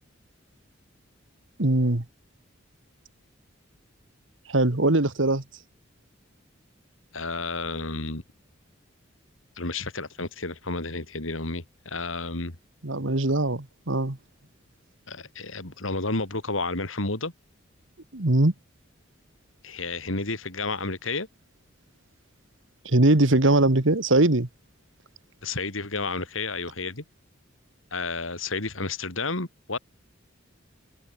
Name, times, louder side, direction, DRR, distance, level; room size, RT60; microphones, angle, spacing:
voice 1, 1.6-2.0 4.5-5.4 12.8-14.2 18.1-18.5 22.9-24.5, right 2 dB, 70° right, 1.8 m, -21 dB
voice 2, 7.1-8.2 9.6-12.6 15.1-17.3 19.6-21.3 25.4-27.0 27.9-29.8, left 3 dB, 80° left, 3.4 m, -31 dB
head